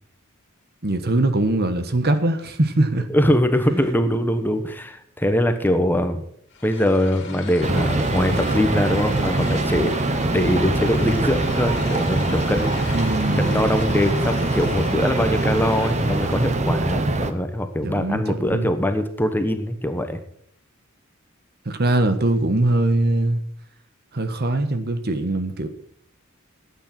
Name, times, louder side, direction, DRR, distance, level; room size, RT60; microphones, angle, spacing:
voice 1, 0.8-3.1 12.9-13.6 17.8-18.7 21.6-23.4 24.1-25.7, right 2 dB, 50° right, 9 dB, 1.3 m, -22 dB
voice 2, 3.1-6.3 6.6-20.2, left 1 dB, 10° left, 8 dB, 1.1 m, -22 dB
sound 1, 6.5-16.8, left 4 dB, 55° left, 2.6 m, -38 dB
sound 2, 7.6-17.3, right 2 dB, 35° right, 1.0 m, -23 dB
13.0 x 9.0 x 6.0 m, 0.65 s
head